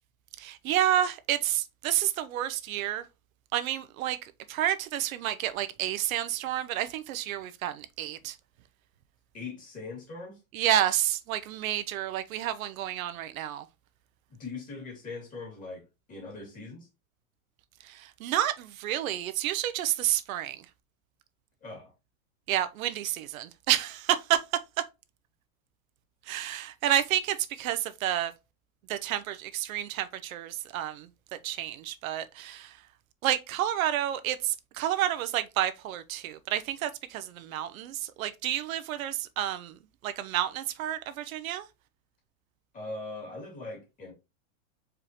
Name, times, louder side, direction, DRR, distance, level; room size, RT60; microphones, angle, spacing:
voice 1, 0.4-3.0 3.5-4.2 4.5-8.4 10.5-13.6 17.9-20.6 22.5-24.4 26.3-28.3 28.9-31.1 31.4-32.7 33.2-39.8 40.0-41.7, right 12 dB, 80° right, 0.6 m, -30 dB
voice 2, 9.3-10.4 14.3-16.9 21.6-21.9 42.7-44.1, left 3 dB, 20° left, 2.3 m, -41 dB
4.9 x 3.6 x 2.9 m
supercardioid pair, 155°, 41 cm